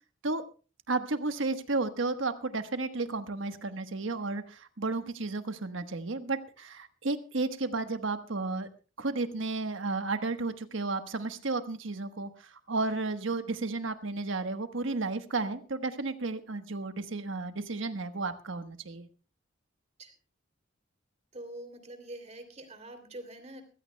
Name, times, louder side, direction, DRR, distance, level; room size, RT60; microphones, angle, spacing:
voice 1, 0.9-8.7 9.0-19.1, right 3 dB, 85° right, 9 dB, 1.2 m, -33 dB
voice 2, 21.3-23.6, right 1 dB, 35° right, 6 dB, 2.9 m, -45 dB
24.0 x 15.5 x 2.2 m, 0.35 s
head